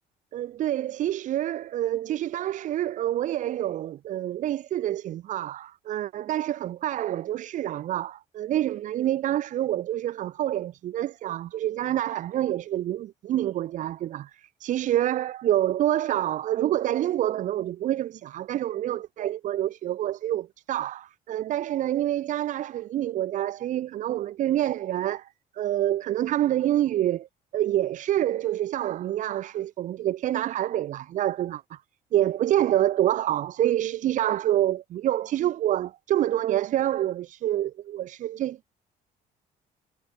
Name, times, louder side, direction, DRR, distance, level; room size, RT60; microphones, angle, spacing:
voice 1, 0.3-25.3 25.6-27.3 27.5-31.8 32.1-38.8, right 12 dB, 50° right, 0.4 m, -27 dB
cardioid pair, 110°, 17 cm